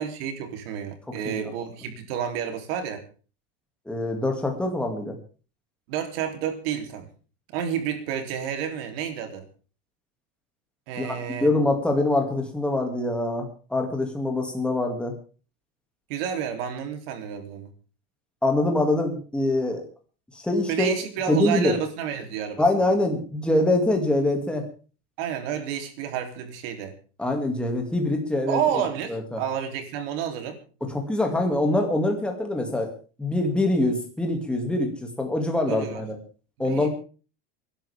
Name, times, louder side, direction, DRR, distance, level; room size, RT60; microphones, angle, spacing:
voice 1, 0.0-3.0 5.9-7.1 7.5-9.5 10.9-11.5 16.1-17.7 20.7-22.6 25.2-26.9 28.5-30.6 35.7-36.0 36.6-36.9, right 8 dB, 60° right, 6 dB, 3.3 m, -30 dB
voice 2, 3.9-5.1 11.0-11.1 11.4-15.1 18.4-19.8 20.3-20.9 21.3-21.7 22.6-24.6 27.2-28.6 29.1-29.4 30.8-32.9 33.2-36.2 36.6-36.9, left 2 dB, 5° left, 2 dB, 2.4 m, -24 dB
27.5 x 11.5 x 3.6 m, 0.38 s
supercardioid pair, 170°, 32 cm